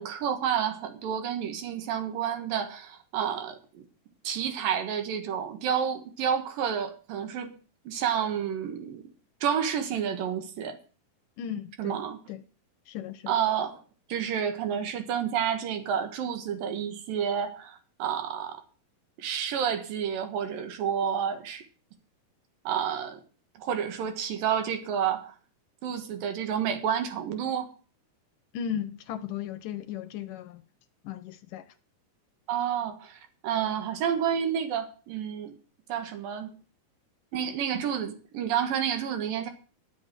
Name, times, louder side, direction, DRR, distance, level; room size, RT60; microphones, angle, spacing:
voice 1, 0.0-3.9 4.2-7.6 7.9-9.0 9.4-10.8 11.8-12.2 13.3-13.8 14.1-18.6 19.2-21.7 22.6-23.2 23.6-25.3 25.8-27.7 32.5-35.5 35.9-36.5 37.3-39.5, right 8 dB, 70° right, 3.2 m, -30 dB
voice 2, 11.4-12.0 12.3-12.4 12.9-13.3 28.5-30.6 31.0-31.6, left 9 dB, 75° left, 2.3 m, -36 dB
11.0 x 7.7 x 7.5 m
omnidirectional pair, 4.3 m